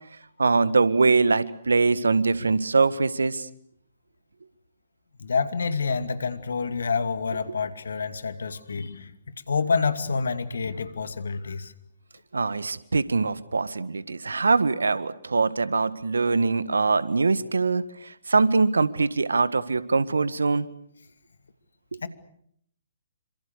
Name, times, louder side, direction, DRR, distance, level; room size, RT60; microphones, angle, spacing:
voice 1, 0.4-3.5 12.3-20.7 21.9-22.0, right 4 dB, 80° right, 15 dB, 1.7 m, -23 dB
voice 2, 5.2-9.1 9.5-11.7 22.0-22.1, left 5 dB, 70° left, 10 dB, 2.5 m, -27 dB
28.0 x 26.5 x 6.7 m, 0.68 s
figure-of-eight pair, 130°, 0 cm